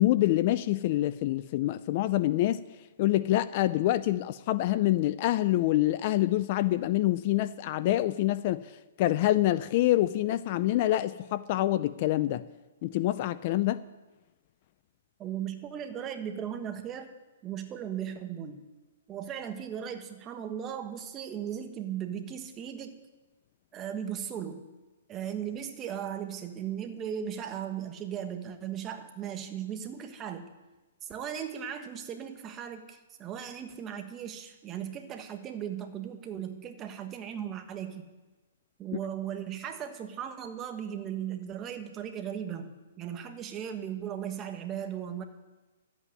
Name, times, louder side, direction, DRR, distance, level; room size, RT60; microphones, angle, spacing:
voice 1, 0.0-2.6 3.0-8.6 9.0-12.4 12.8-13.8, left 15 dB, 40° left, 15 dB, 0.5 m, -26 dB
voice 2, 15.2-17.1 17.4-18.7 19.1-23.0 23.7-24.7 25.1-30.5 31.0-38.1 38.8-45.2, right 9 dB, 20° right, 6 dB, 1.4 m, -37 dB
13.0 x 8.3 x 9.9 m, 1.1 s
hypercardioid pair, 160°, 0 cm